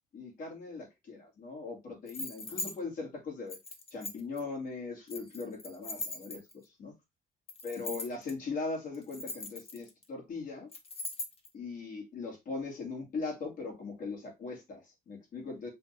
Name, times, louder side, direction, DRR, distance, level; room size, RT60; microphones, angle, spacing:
voice 1, 0.1-3.6 3.9-6.4 6.8-6.9 7.6-10.7 11.5-15.7, left 4 dB, 65° left, 2.3 m, -39 dB
sound 1, 2.1-2.7 3.5-4.4 5.1-6.6 7.5-8.3 8.9-10.0 10.7-11.5, left 3 dB, 40° left, 1.0 m, -40 dB
5.6 x 2.6 x 3.3 m
cardioid pair, 100°, 15 cm